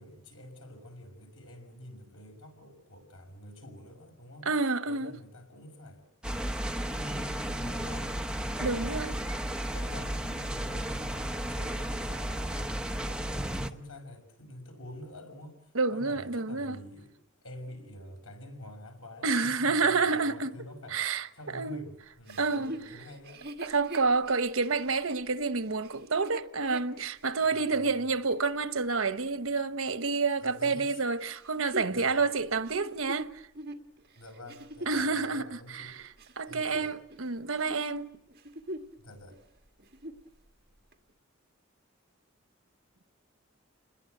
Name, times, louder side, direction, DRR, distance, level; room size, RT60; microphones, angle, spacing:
voice 1, 0.0-4.5 4.9-6.5 6.9-15.6 15.9-17.1 17.4-21.0 21.3-23.4 27.5-28.0 30.4-31.0 31.9-32.2 34.2-36.0 36.5-37.0 39.0-39.4, left 1 dB, 85° left, 6.1 m, -47 dB
voice 2, 4.4-5.1 8.6-9.1 15.7-16.8 19.2-20.5 20.9-21.3 21.5-21.8 22.4-22.7 23.6-33.4 34.9-36.0 36.4-38.2, right 4 dB, 85° right, 1.1 m, -29 dB
sound 1, 6.2-13.7, right 1 dB, 5° right, 0.9 m, -33 dB
Chuckle chortle, 22.3-27.9 28.4-28.5 31.2-35.2 35.8-37.3 37.5-37.9 38.3-39.0 39.3-39.4 39.8-40.3 40.9-41.0, right 1 dB, 50° right, 2.0 m, -43 dB
29.5 x 21.0 x 7.9 m
head